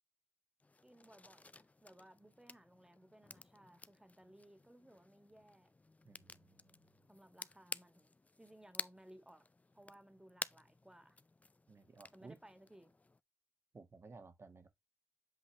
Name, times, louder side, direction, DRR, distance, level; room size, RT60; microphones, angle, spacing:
sound 1, 0.6-13.2, left 3 dB, 30° left, 0.4 m, -52 dB
voice 1, 0.8-5.7 7.1-9.4 9.7-11.2 12.1-12.9, right 1 dB, 10° right, 1.8 m, -61 dB
voice 2, 6.0-6.9 11.7-12.4 13.7-14.7, right 3 dB, 60° right, 1.9 m, -57 dB
7.9 x 4.5 x 3.5 m
cardioid pair, 60°, 5 cm